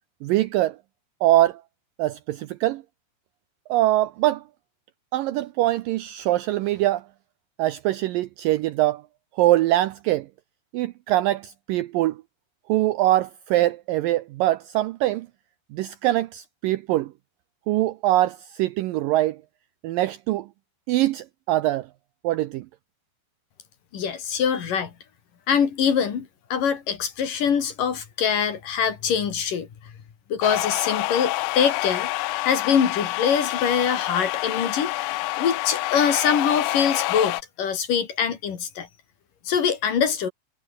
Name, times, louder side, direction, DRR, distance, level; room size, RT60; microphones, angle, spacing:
voice 1, 0.2-0.8 1.2-1.6 2.0-2.8 3.7-4.4 5.1-7.0 7.6-9.0 9.4-10.3 10.7-12.2 12.7-15.3 15.7-17.1 17.7-19.4 19.8-20.5 20.9-21.9 22.2-22.7, right 15 dB, 80° right, 2.0 m, -23 dB
voice 2, 23.9-24.9 25.5-29.7 30.3-32.1 32.4-34.9 35.4-38.9 39.5-40.3, left 7 dB, 55° left, 4.2 m, -23 dB
sound 1, 30.4-37.4, left 19 dB, 90° left, 2.8 m, -27 dB
omnidirectional pair, 4.7 m